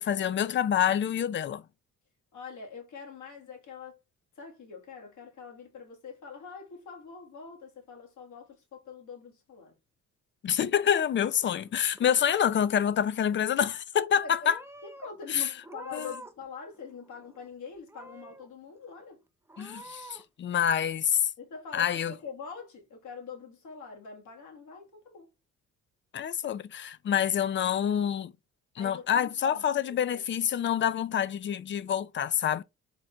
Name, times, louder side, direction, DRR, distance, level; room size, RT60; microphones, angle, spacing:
voice 1, 0.0-1.6 10.4-14.6 15.3-15.5 15.9-16.1 19.6-21.2 21.7-22.1 26.1-28.3 28.8-32.6, left 9 dB, 40° left, 0.4 m, -27 dB
voice 2, 2.3-4.0 4.4-9.7 14.2-14.6 14.8-19.2 21.4-25.3 28.8-30.2, left 5 dB, 75° left, 1.8 m, -44 dB
Purr / Meow, 11.7-12.5 12.8-13.4 14.1-14.2 14.5-15.1 15.6-16.5 16.7-17.5 17.9-18.5 18.9-19.0 19.5-20.2, right 1 dB, 10° right, 0.7 m, -48 dB
4.0 x 3.2 x 3.6 m
cardioid pair, 90°, 30 cm